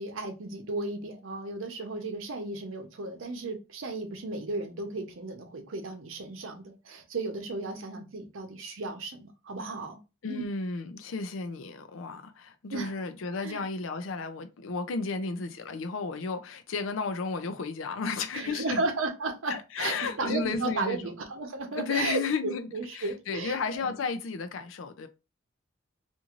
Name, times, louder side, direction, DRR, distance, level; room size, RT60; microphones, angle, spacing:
voice 1, 0.0-10.0 10.3-10.4 12.7-12.9 13.4-13.6 18.3-23.9, right 3 dB, 90° right, 0.7 m, -34 dB
voice 2, 10.2-18.8 19.5-21.1 21.7-22.7 22.9-25.1, left 4 dB, 80° left, 0.5 m, -33 dB
2.6 x 2.4 x 2.9 m
head